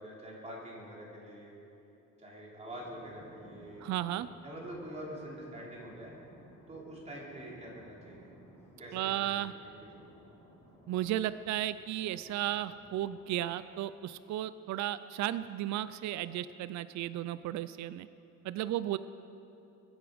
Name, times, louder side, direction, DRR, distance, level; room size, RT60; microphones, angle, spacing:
voice 1, 0.0-1.6 2.2-3.9 4.4-6.1 6.7-8.3 8.8-10.1, right 1 dB, 20° right, -4 dB, 3.3 m, -45 dB
sound 1, 2.7-13.4, equal, 10° left, 3.4 m, -58 dB
voice 2, 3.8-4.3 8.9-9.5 10.9-18.1 18.4-19.0, right 13 dB, 60° right, 15 dB, 0.4 m, -34 dB
22.0 x 9.6 x 5.1 m, 3.0 s
cardioid pair, 160°, 32 cm